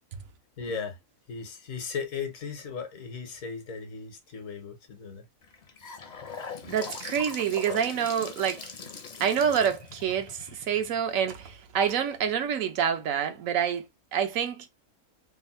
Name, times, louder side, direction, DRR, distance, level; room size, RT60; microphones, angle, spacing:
voice 1, 0.6-1.0 1.3-5.2, left 5 dB, 75° left, 1.4 m, -36 dB
Gurgling / Sink (filling or washing) / Bathtub (filling or washing), 5.4-11.5, left 5 dB, 45° left, 0.6 m, -41 dB
voice 2, 6.7-8.7 9.2-13.8 14.1-14.7, right 8 dB, 75° right, 1.1 m, -27 dB
3.5 x 2.1 x 4.1 m
omnidirectional pair, 1.4 m